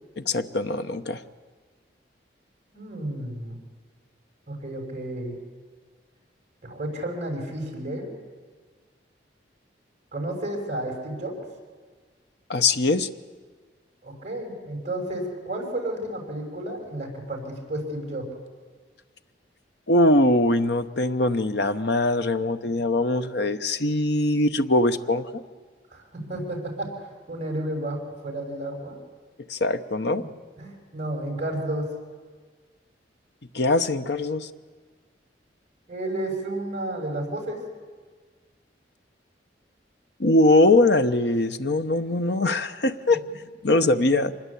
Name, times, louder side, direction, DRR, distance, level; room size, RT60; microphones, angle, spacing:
voice 1, 0.2-1.2 12.5-13.1 19.9-25.4 29.5-30.2 33.5-34.5 40.2-43.2 43.6-44.3, left 2 dB, 60° left, 9 dB, 1.0 m, -22 dB
voice 2, 2.7-3.6 4.5-5.3 6.6-8.1 10.1-11.3 14.0-18.3 25.9-29.0 30.2-30.3 30.6-31.9 35.9-37.6, right 1 dB, 35° right, 2 dB, 5.7 m, -32 dB
25.5 x 21.0 x 8.4 m, 1.5 s
head